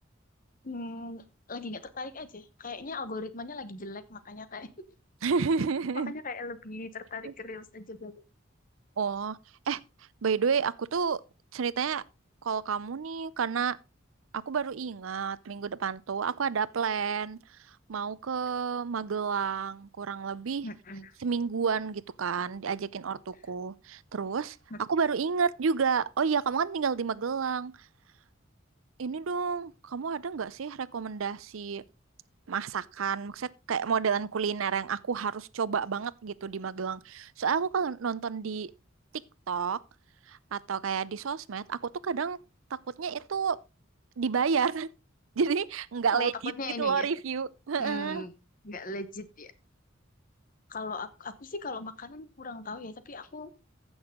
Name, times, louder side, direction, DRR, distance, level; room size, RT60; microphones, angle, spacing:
voice 1, 0.6-4.7 5.9-8.1 20.6-21.1 24.7-24.8 46.1-47.1 47.8-48.3 48.6-49.5 50.7-53.5, left 3 dB, 45° left, 1.0 m, -39 dB
voice 2, 5.2-6.1 7.2-7.3 9.0-9.4 9.7-9.8 10.2-11.2 11.5-12.0 12.4-13.8 14.3-17.4 17.9-20.7 21.2-27.7 29.0-31.8 32.5-38.7 39.5-39.8 40.3-42.4 43.0-43.6 44.2-44.9 45.4-46.5 46.8-48.2, right 6 dB, 85° right, 0.5 m, -30 dB
15.0 x 6.4 x 3.7 m
head